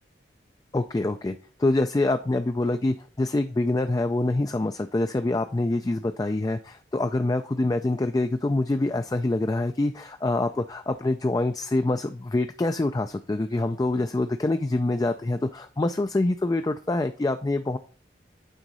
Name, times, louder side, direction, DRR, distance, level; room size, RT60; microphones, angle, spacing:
voice 1, 0.7-17.8, left 2 dB, 20° left, 8 dB, 0.3 m, -25 dB
8.9 x 3.9 x 5.3 m, 0.42 s
head